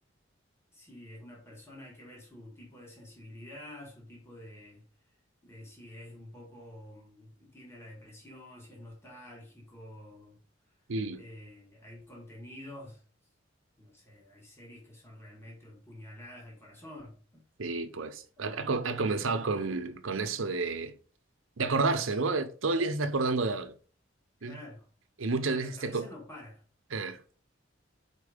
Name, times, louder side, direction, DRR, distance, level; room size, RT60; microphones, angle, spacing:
voice 1, 0.7-4.9 5.4-10.4 11.2-13.0 13.8-17.5 18.4-19.6 24.4-24.9 25.4-26.6, left 1 dB, 15° left, 1.8 m, -49 dB
voice 2, 10.9-11.2 17.6-20.9 21.6-23.7 24.4-24.6 25.2-26.1 26.9-27.2, right 3 dB, 85° right, 0.8 m, -30 dB
4.6 x 4.5 x 5.0 m
head